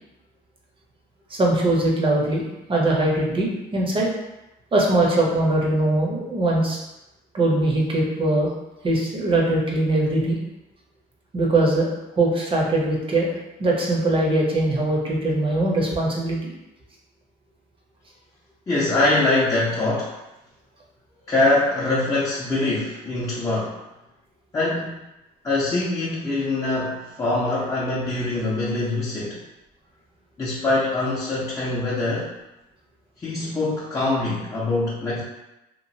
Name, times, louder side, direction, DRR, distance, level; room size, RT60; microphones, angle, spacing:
voice 1, 1.3-2.4 2.7-4.1 4.7-6.8 7.3-8.5 8.8-10.4 11.3-11.9 12.2-13.3 13.6-16.4, right 2 dB, 30° right, -2 dB, 0.8 m, -21 dB
voice 2, 18.7-20.1 21.3-23.7 24.5-25.0 25.4-29.4 30.4-32.3 33.2-35.2, left 2 dB, 20° left, -8 dB, 0.6 m, -23 dB
2.9 x 2.4 x 2.7 m, 0.97 s
cardioid pair, 110°, 17 cm